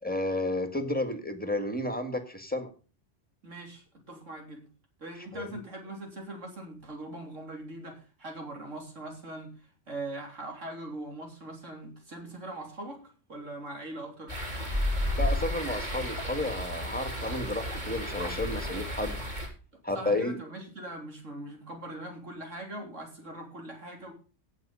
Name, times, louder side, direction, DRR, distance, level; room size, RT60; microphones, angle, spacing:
voice 1, 0.0-2.7 5.3-5.6 15.2-19.2 19.8-20.4, left 1 dB, 5° left, 7 dB, 1.9 m, -32 dB
voice 2, 3.4-4.6 5.0-9.6 9.9-13.0 13.3-14.4 19.9-24.1, right 2 dB, 85° right, 2 dB, 3.7 m, -41 dB
sound 1, 14.3-19.5, left 1 dB, 35° right, 4.1 m, -32 dB
17.0 x 6.1 x 5.6 m, 0.36 s
omnidirectional pair, 1.3 m